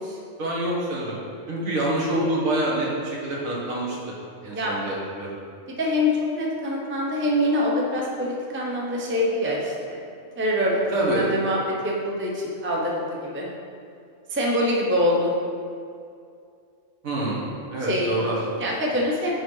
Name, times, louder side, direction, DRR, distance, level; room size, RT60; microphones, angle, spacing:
voice 1, 0.4-1.2 1.5-4.0 4.4-5.3 10.9-11.3 17.0-17.4 17.7-18.7, right 1 dB, 75° right, -5 dB, 1.8 m, -26 dB
voice 2, 5.8-10.0 10.4-11.6 11.8-13.5 14.3-15.3 17.9-18.2 18.6-19.3, left 1 dB, 10° right, -3 dB, 0.7 m, -24 dB
6.7 x 4.7 x 4.8 m, 2.4 s
omnidirectional pair, 1.4 m